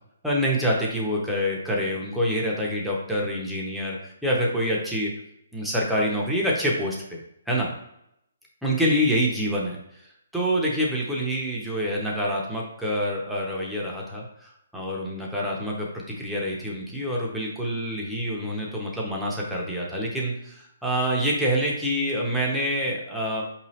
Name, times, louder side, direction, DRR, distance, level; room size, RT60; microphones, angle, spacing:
voice 1, 0.2-5.1 5.5-7.2 7.5-7.7 8.6-9.8 10.3-23.4, equal, ahead, -5 dB, 0.6 m, -26 dB
4.7 x 3.0 x 2.8 m, 0.78 s
hypercardioid pair, 155°, 0 cm